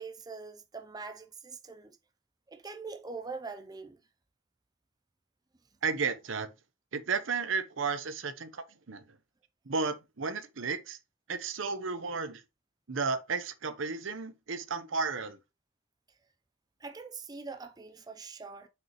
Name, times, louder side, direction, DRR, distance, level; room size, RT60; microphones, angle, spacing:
voice 1, 0.0-2.0 2.5-4.0 16.8-18.7, right 4 dB, 20° right, 0.5 m, -43 dB
voice 2, 5.8-6.5 6.9-9.0 9.7-11.0 11.3-12.4 12.9-15.4, right 4 dB, 80° right, 0.8 m, -33 dB
6.1 x 5.1 x 3.0 m
head